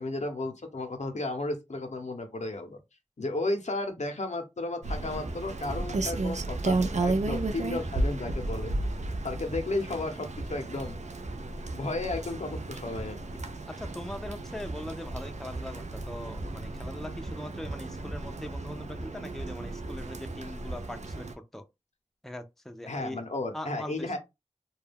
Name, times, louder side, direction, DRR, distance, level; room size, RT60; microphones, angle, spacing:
voice 1, 0.0-2.8 3.2-8.7 9.2-11.0 11.7-13.4 22.9-24.2, left 2 dB, 80° left, 0.6 m, -33 dB
Rain, 4.8-21.4, right 2 dB, 80° right, 0.4 m, -34 dB
sound 1, 5.2-21.1, right 2 dB, 40° right, 0.7 m, -43 dB
voice 2, 13.8-21.3 21.5-21.6 22.2-23.2 23.5-24.2, left 1 dB, 5° left, 0.4 m, -41 dB
2.3 x 2.1 x 3.3 m
wide cardioid pair, 45°, 12 cm